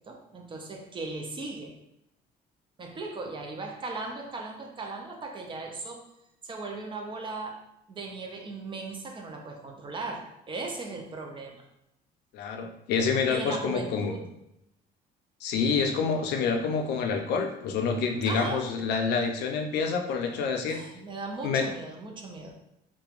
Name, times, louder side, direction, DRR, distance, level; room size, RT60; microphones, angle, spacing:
voice 1, 0.0-1.8 2.8-6.0 6.4-7.6 7.9-11.6 13.3-14.2 18.3-18.7 20.7-22.5, right 3 dB, 30° right, 2 dB, 0.5 m, -37 dB
voice 2, 12.3-14.2 15.4-20.8 21.4-21.7, left 5 dB, 80° left, 4 dB, 0.4 m, -27 dB
2.9 x 2.2 x 2.4 m, 0.83 s
cardioid pair, 110°, 17 cm